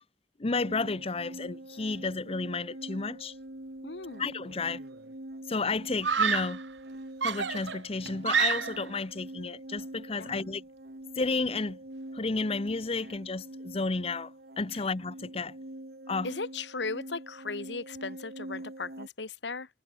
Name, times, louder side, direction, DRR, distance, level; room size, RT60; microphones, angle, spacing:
voice 1, 0.4-3.4 4.2-4.8 5.5-6.6 7.2-10.6 11.2-11.8 12.1-14.3 14.6-15.5 16.1-16.3, left 3 dB, 35° left, 0.7 m, -32 dB
sound 1, 0.5-19.1, right 1 dB, 60° right, 2.1 m, -45 dB
voice 2, 3.8-4.2 10.2-10.4 16.2-19.7, left 4 dB, 75° left, 1.5 m, -37 dB
Screaming, 4.5-4.9 6.0-6.7 7.2-8.9, right 6 dB, 85° right, 1.5 m, -29 dB
head